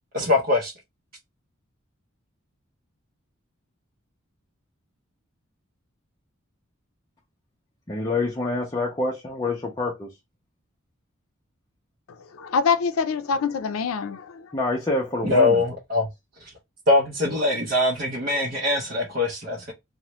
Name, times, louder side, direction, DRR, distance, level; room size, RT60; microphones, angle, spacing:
voice 1, 0.1-0.7 15.2-16.1 16.9-19.7, left 2 dB, 45° right, 0.6 m, -22 dB
voice 2, 7.9-10.1 14.5-15.6, left 2 dB, 20° left, 0.5 m, -26 dB
voice 3, 12.3-14.5, left 5 dB, 85° left, 0.4 m, -25 dB
2.9 x 2.1 x 2.9 m
head